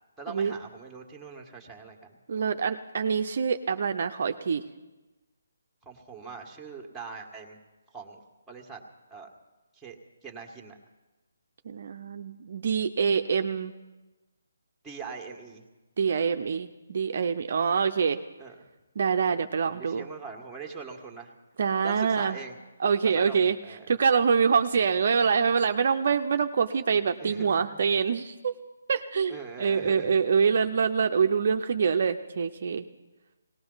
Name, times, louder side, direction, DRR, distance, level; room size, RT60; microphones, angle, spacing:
voice 1, 0.2-2.2 5.8-7.6 7.9-8.2 8.5-8.8 9.1-9.3 9.7-10.0 10.2-10.8 14.8-15.6 18.4-18.7 19.6-21.3 21.8-22.6 23.0-23.9 27.1-27.7 29.3-30.1, right 5 dB, 5° right, 0 dB, 1.7 m, -42 dB
voice 2, 2.3-4.6 11.6-13.7 16.0-18.2 19.0-20.1 21.6-22.4 22.8-23.6 23.9-28.5 28.9-32.8, right 6 dB, 55° right, 7 dB, 0.6 m, -25 dB
18.5 x 18.5 x 4.0 m, 1.1 s
figure-of-eight pair, 150°, 0 cm